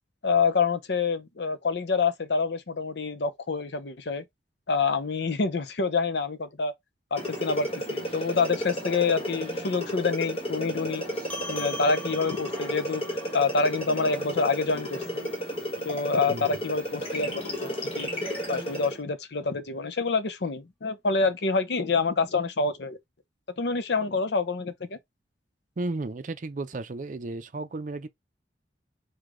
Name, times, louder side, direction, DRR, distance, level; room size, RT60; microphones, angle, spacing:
voice 1, 0.2-4.2 4.7-6.7 7.1-11.0 11.5-13.0 13.3-15.3 15.8-18.1 18.5-23.0 23.6-25.0, left 4 dB, 65° left, 0.7 m, -27 dB
sound 1, 7.2-19.0, equal, 30° left, 1.5 m, -33 dB
sound 2, 11.3-16.1, left 1 dB, 10° left, 1.0 m, -43 dB
voice 2, 25.8-28.1, right 2 dB, 45° right, 0.5 m, -33 dB
4.8 x 2.3 x 3.7 m
head